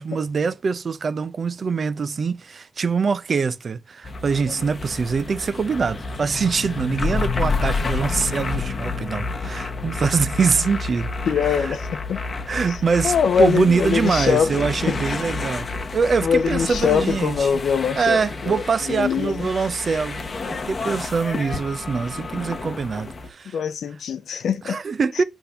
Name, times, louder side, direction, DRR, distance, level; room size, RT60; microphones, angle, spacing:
voice 1, 0.0-11.1 11.4-11.8 12.5-15.7 15.9-17.6 17.9-23.6 24.6-25.2, right 5 dB, 50° right, 0.5 m, -24 dB
sound 1, 4.0-23.3, left 4 dB, 40° left, 0.9 m, -29 dB
voice 2, 11.3-12.2 12.7-12.8 13.0-15.2 16.2-19.5 23.5-24.8, left 7 dB, 75° left, 0.7 m, -23 dB
6.9 x 3.6 x 5.6 m
cardioid pair, 105°, 0 cm